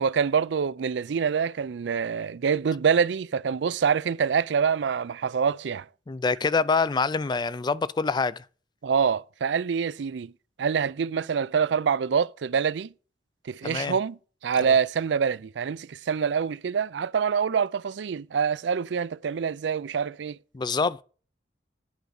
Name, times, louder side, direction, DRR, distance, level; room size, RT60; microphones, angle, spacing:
voice 1, 0.0-5.9 8.8-10.3 10.6-12.9 13.5-20.4, right 6 dB, 70° right, 0.4 m, -26 dB
voice 2, 6.1-8.4 13.6-13.9 20.5-21.0, left 4 dB, 25° left, 0.4 m, -25 dB
9.3 x 5.0 x 6.4 m
head